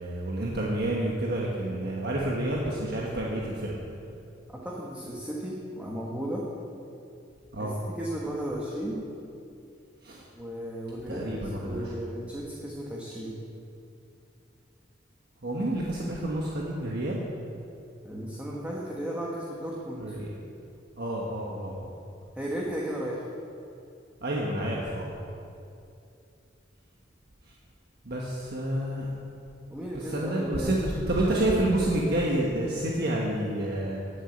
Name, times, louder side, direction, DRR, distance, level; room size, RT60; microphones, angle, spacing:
voice 1, 0.0-3.7 7.5-7.8 10.0-10.2 11.1-11.8 15.4-17.2 20.0-20.3 21.0-21.9 24.2-25.1 28.0-29.1 30.1-34.0, right 1 dB, 60° right, -3 dB, 1.3 m, -29 dB
voice 2, 4.5-6.4 7.6-9.0 10.3-13.4 18.0-20.0 22.4-23.3 29.7-30.8, equal, 10° right, -4 dB, 1.3 m, -35 dB
10.0 x 9.2 x 7.9 m, 2.6 s
head